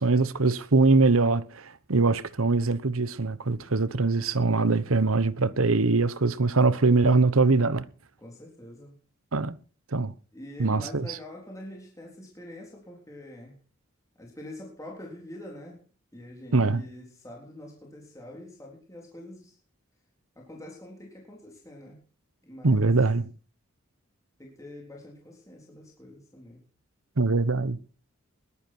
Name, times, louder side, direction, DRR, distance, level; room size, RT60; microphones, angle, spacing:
voice 1, 0.0-7.8 9.3-9.6 9.9-10.1 10.6-11.2 16.5-16.8 22.6-23.3 27.2-27.8, right 3 dB, 85° right, 1.1 m, -23 dB
voice 2, 8.2-9.0 10.3-13.6 14.2-15.8 16.1-19.6 20.4-22.0 22.4-22.9 24.4-26.6, left 1 dB, 15° left, 3.6 m, -45 dB
21.0 x 10.5 x 4.5 m
head